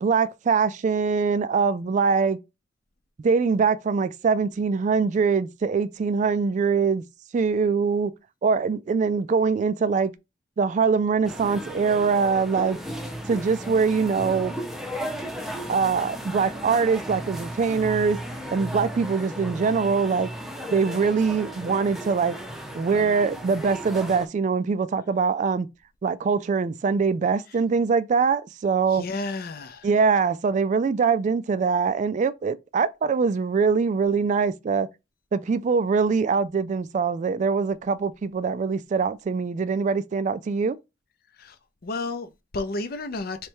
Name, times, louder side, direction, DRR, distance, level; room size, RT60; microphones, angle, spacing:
voice 1, 0.0-2.4 3.2-7.0 7.3-8.1 8.4-10.1 10.6-12.8 13.3-14.5 15.7-18.2 18.5-20.3 20.7-22.4 22.7-25.7 26.0-29.0 29.8-34.9 35.3-40.8, right 5 dB, 40° right, 0.3 m, -23 dB
sound 1, 11.2-24.3, equal, ahead, 0.6 m, -35 dB
voice 2, 28.9-29.9 41.4-41.6 41.8-43.5, left 3 dB, 55° left, 0.6 m, -32 dB
3.2 x 3.1 x 4.5 m
head